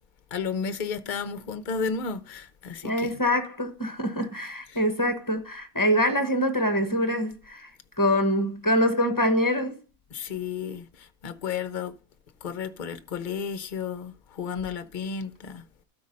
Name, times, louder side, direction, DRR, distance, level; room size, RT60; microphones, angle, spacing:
voice 1, 0.3-3.1 4.7-4.8 10.1-11.9 12.4-15.6, left 6 dB, 40° left, 0.8 m, -33 dB
voice 2, 2.8-7.7 8.0-9.8, equal, 15° left, 1.1 m, -25 dB
12.5 x 4.5 x 5.3 m
omnidirectional pair, 1.5 m